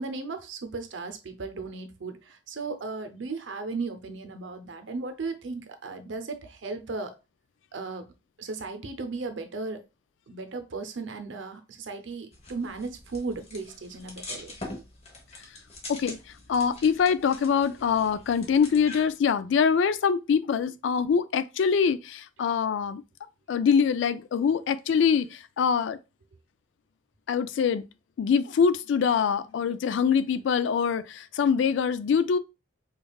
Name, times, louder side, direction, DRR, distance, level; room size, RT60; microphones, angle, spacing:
voice 1, 0.0-7.1 7.7-8.1 8.4-9.8 10.3-14.6, right 3 dB, 75° right, 0.6 m, -36 dB
sound 1, 12.3-19.1, left 2 dB, 30° left, 0.9 m, -44 dB
voice 2, 16.5-23.0 23.5-26.0 27.3-27.9 28.2-32.4, left 6 dB, 70° left, 0.3 m, -24 dB
5.2 x 2.3 x 2.3 m
head